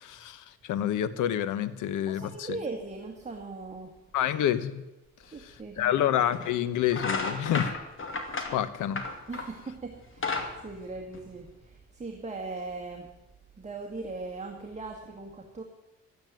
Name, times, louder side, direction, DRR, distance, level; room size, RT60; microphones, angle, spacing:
voice 1, 0.0-2.6 4.1-4.8 5.4-7.8 8.5-9.0, left 10 dB, 85° left, 14 dB, 1.1 m, -28 dB
voice 2, 2.1-3.9 5.3-6.0 9.3-10.4 10.6-13.1 13.6-15.6, right 3 dB, 20° right, 1 dB, 2.1 m, -39 dB
sound 1, 5.6-5.7 6.3-6.5 6.9-9.6 10.0-11.6, left 3 dB, 45° left, 2.7 m, -33 dB
13.0 x 9.4 x 9.2 m, 1.0 s
cardioid pair, 90°, 30 cm